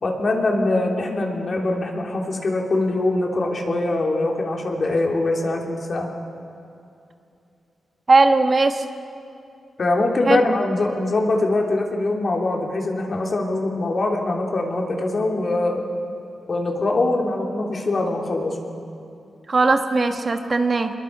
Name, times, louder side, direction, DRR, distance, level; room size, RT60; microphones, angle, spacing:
voice 1, 0.0-6.1 9.8-15.8 16.5-18.5, left 2 dB, 50° left, 0 dB, 3.3 m, -23 dB
voice 2, 8.1-8.8 10.3-10.4 19.5-20.9, right 3 dB, 45° right, 6 dB, 1.4 m, -18 dB
26.5 x 22.0 x 4.8 m, 2.6 s
cardioid pair, 75°, 0 cm